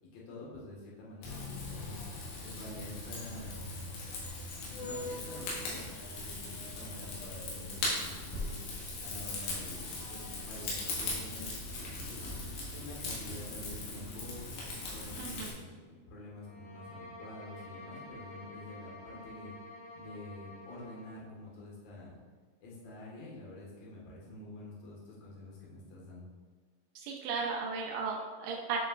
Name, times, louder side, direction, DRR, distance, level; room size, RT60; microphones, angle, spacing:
voice 1, 0.0-3.6 4.6-5.8 6.1-11.5 12.7-19.5 19.9-22.2 22.6-26.3, left 2 dB, 65° left, -5 dB, 1.7 m, -48 dB
Rain / Fire, 1.2-15.5, left 2 dB, 90° left, 4.3 m, -39 dB
voice 2, 15.2-15.5 27.0-28.8, right 5 dB, 85° right, -2 dB, 2.3 m, -35 dB
sound 1, 16.4-21.2, left 2 dB, 45° left, 1.2 m, -49 dB
10.5 x 5.4 x 2.5 m, 1.4 s
omnidirectional pair, 5.6 m